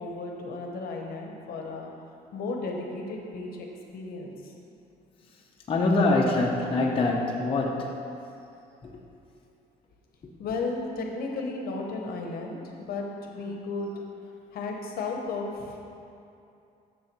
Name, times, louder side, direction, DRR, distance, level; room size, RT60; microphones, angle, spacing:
voice 1, 0.0-1.9 2.3-3.7 3.9-4.5 10.4-12.6 12.9-13.9 14.5-15.8, left 3 dB, 60° left, 1 dB, 0.9 m, -34 dB
voice 2, 5.7-7.9 8.8-9.0, left 2 dB, 30° left, -2 dB, 0.8 m, -24 dB
6.7 x 3.9 x 6.0 m, 2.7 s
cardioid pair, 110°, 17 cm